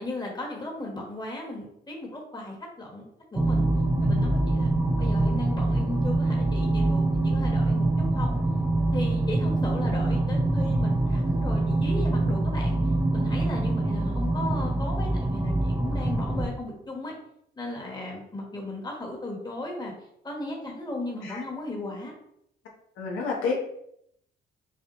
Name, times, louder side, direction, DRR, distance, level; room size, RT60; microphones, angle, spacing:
voice 1, 0.0-3.1 3.3-3.7 4.0-4.7 5.0-8.4 8.9-12.8 13.1-17.1 17.6-19.9 20.2-22.1, left 2 dB, 20° left, -1 dB, 1.3 m, -36 dB
sound 1, 3.3-16.5, right 2 dB, 15° right, 0.5 m, -24 dB
voice 2, 23.0-23.5, left 4 dB, 85° left, -1 dB, 0.9 m, -28 dB
5.7 x 2.2 x 3.0 m, 0.74 s
cardioid pair, 90°, 20 cm